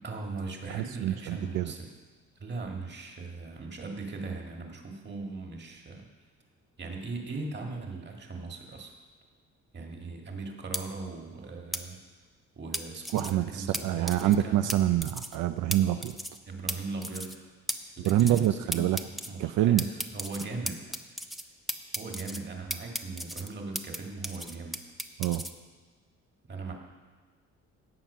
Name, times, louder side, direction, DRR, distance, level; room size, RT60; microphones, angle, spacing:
voice 1, 0.0-1.9 2.3-6.0 6.8-8.9 9.7-12.0 12.5-14.6 16.4-17.3 18.0-19.0 19.3-20.8 21.9-24.8 26.5-26.7, right 3 dB, 35° right, 1 dB, 1.8 m, -39 dB
voice 2, 0.7-1.7 13.1-16.2 18.0-19.0 19.4-19.8 25.2-25.5, right 13 dB, 90° right, 10 dB, 0.5 m, -26 dB
sound 1, 10.7-10.8 11.7-11.8 12.7-13.3 13.7-13.8 14.1-14.4 14.7-14.8 15.0-15.4 15.7-15.8 16.0-16.4 16.7-16.8 17.0-17.4 17.7-17.8 18.0-18.5 18.7-19.3 19.8-21.4 21.7-22.4 22.7-24.0 24.2-25.5, equal, ahead, 0.5 m, -34 dB
16.5 x 6.0 x 5.5 m, 1.4 s
cardioid pair, 125°, 30 cm